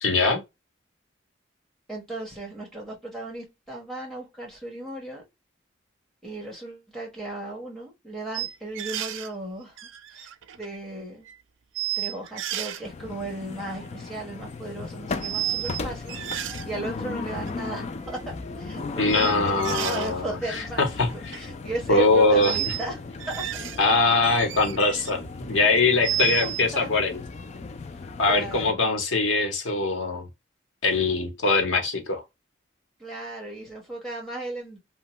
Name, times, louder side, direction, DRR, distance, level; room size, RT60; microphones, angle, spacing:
voice 1, 0.0-0.4 19.0-21.4 21.9-22.6 23.8-27.2 28.2-30.3 30.8-32.2, left 3 dB, 90° left, 0.9 m, -22 dB
voice 2, 1.9-5.2 6.2-9.8 10.1-11.3 11.9-20.8 21.1-23.0 23.3-23.5 26.2-26.9 28.2-28.8 33.0-34.8, right 2 dB, ahead, 1.1 m, -36 dB
sound 1, 8.3-9.3 9.8-10.8 11.3-11.4 11.7-12.8 13.6-13.9 15.2-15.8 16.1-16.6 17.5-17.6 19.1-20.1 21.1-21.4 22.4-22.9 23.2-23.8 24.2-25.1 25.5-26.6, right 13 dB, 85° right, 0.4 m, -32 dB
sound 2, 12.8-28.7, left 3 dB, 35° left, 0.3 m, -37 dB
2.8 x 2.2 x 2.9 m
head